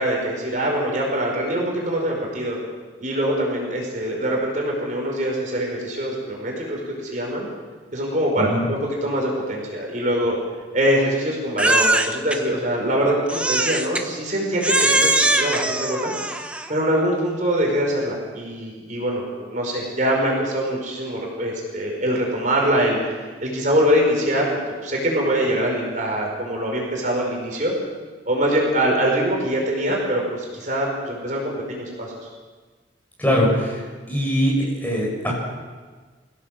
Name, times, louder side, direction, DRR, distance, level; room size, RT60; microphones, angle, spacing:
voice 1, 0.0-2.6 3.0-7.5 7.9-10.4 10.7-15.1 15.4-16.1 16.7-27.7 28.3-32.1, equal, 45° right, -1 dB, 5.2 m, -23 dB
Crying sobbing, 11.6-12.4 13.3-14.1 14.6-16.7, right 1 dB, 5° right, 1.0 m, -21 dB
voice 2, 33.2-33.8 34.1-35.3, equal, 10° left, -3 dB, 6.9 m, -21 dB
24.5 x 17.0 x 7.5 m, 1.4 s
head